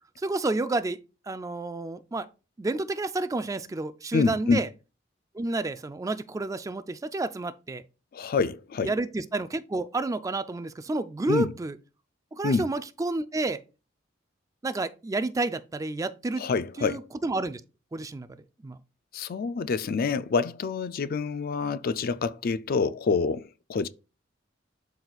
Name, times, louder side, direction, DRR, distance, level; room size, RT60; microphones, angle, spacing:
voice 1, 0.2-1.0 1.3-2.3 2.6-4.7 5.3-7.8 8.8-11.7 12.3-13.6 14.6-16.4 16.8-17.6 17.9-18.3 18.6-18.8, right 2 dB, 15° right, 0.3 m, -30 dB
voice 2, 4.1-4.6 8.1-8.9 11.3-11.5 12.4-12.7 16.4-17.0 19.1-23.9, left 4 dB, 50° left, 0.4 m, -27 dB
12.0 x 4.0 x 2.4 m
head